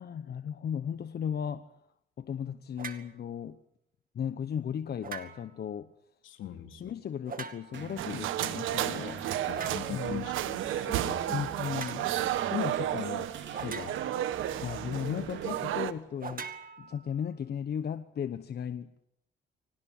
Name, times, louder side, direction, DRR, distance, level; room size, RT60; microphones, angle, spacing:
voice 1, 0.0-1.7 2.2-3.6 4.1-5.9 6.7-9.2 9.9-10.3 11.3-12.1 12.5-13.3 13.6-14.0 14.6-16.5 16.8-19.1, left 8 dB, 55° left, 1.1 m, -36 dB
sound 1, 2.8-3.1 5.0-5.6 7.3-7.9 9.5-9.9 11.7-12.0 13.5-14.3 16.2-17.3, right 6 dB, 45° right, 2.2 m, -42 dB
voice 2, 6.2-6.9 9.5-11.5 12.2-12.3, left 11 dB, 80° left, 3.4 m, -42 dB
sound 2, 7.7-16.2, right 6 dB, 65° right, 4.3 m, -44 dB
sound 3, 8.0-15.9, right 12 dB, 85° right, 1.4 m, -32 dB
24.5 x 18.5 x 8.9 m
cardioid pair, 90°, 20 cm